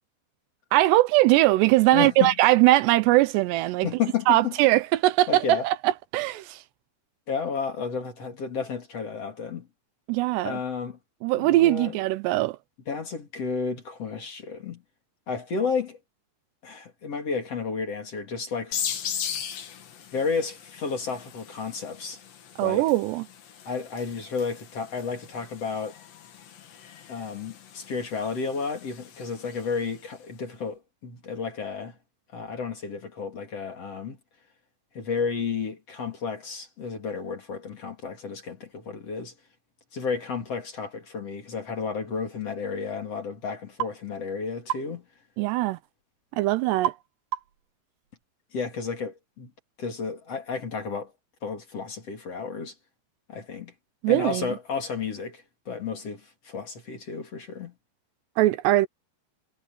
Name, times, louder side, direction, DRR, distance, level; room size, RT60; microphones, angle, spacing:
voice 1, 0.7-3.9 4.3-6.6 10.1-10.6 11.2-12.6 22.6-23.3 45.4-45.8 46.3-46.9 54.0-54.5 58.4-58.9, right 17 dB, 80° right, 2.7 m, -21 dB
voice 2, 1.9-2.3 3.8-4.5 5.3-5.7 7.3-9.7 10.4-11.0 11.3-12.0 12.9-14.8 15.3-16.0 16.6-18.9 20.1-22.2 22.6-22.8 23.7-26.0 27.1-32.0 32.3-34.2 34.9-39.3 39.9-45.0 48.5-49.5 49.8-51.1 51.4-52.7 53.3-53.7 54.1-57.7, left 5 dB, 40° left, 3.6 m, -32 dB
sound 1, 18.7-30.1, left 8 dB, 80° left, 4.9 m, -39 dB
sound 2, 43.8-44.0 44.7-44.9 46.8-47.1 47.3-47.7, right 13 dB, 65° right, 4.6 m, -29 dB
omnidirectional pair, 5.0 m